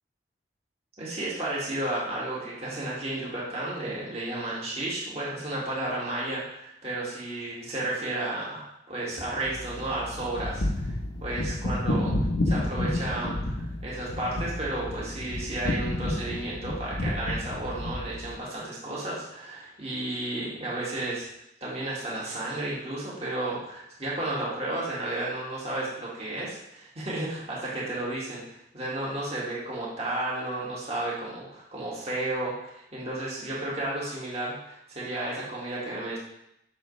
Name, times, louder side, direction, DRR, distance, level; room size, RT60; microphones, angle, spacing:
voice 1, 1.0-11.0 11.2-12.1 12.5-21.3 21.6-28.4 28.7-36.2, right 1 dB, 35° right, -6 dB, 2.1 m, -33 dB
sound 1, 9.4-18.4, left 1 dB, 85° left, 0.9 m, -30 dB
8.2 x 6.0 x 3.3 m, 0.80 s
head